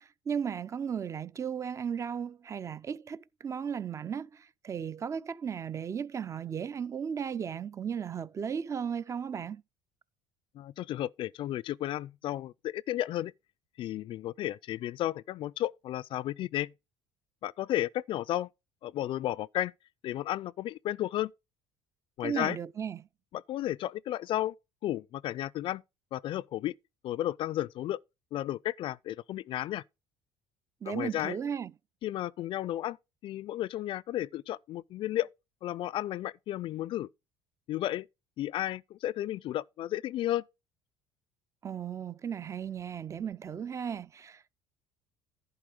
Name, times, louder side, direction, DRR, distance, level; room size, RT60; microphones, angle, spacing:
voice 1, 0.0-9.6 22.2-23.1 30.8-31.7 41.6-44.5, right 7 dB, 30° right, 0.4 m, -35 dB
voice 2, 10.5-13.3 13.8-16.7 17.4-18.5 18.8-19.7 20.0-21.3 22.2-22.6 23.3-24.5 24.8-25.8 26.1-26.7 27.0-28.0 28.3-29.8 30.9-31.4 32.0-33.0 33.2-35.3 35.6-37.1 37.7-38.1 38.4-40.4, left 13 dB, 50° left, 0.3 m, -33 dB
11.0 x 4.6 x 4.9 m
supercardioid pair, 95°, 11 cm